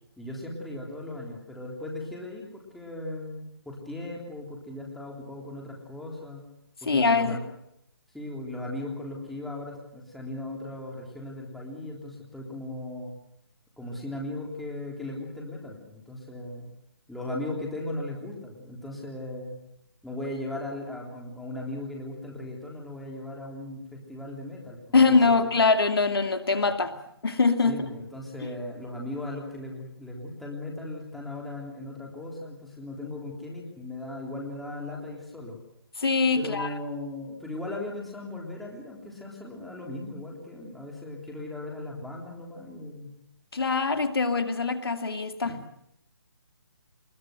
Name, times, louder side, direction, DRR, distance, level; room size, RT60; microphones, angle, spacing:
voice 1, 0.2-6.5 6.8-7.4 8.1-13.1 13.8-16.7 17.1-19.6 20.0-25.5 27.6-35.6 36.4-43.1 45.4-45.6, left 1 dB, ahead, -2 dB, 3.5 m, -37 dB
voice 2, 6.8-7.4 24.9-26.9 27.2-27.8 36.0-36.7 43.5-45.6, left 4 dB, 70° left, 7 dB, 2.3 m, -23 dB
21.5 x 21.5 x 7.9 m, 0.79 s
hypercardioid pair, 160°, 13 cm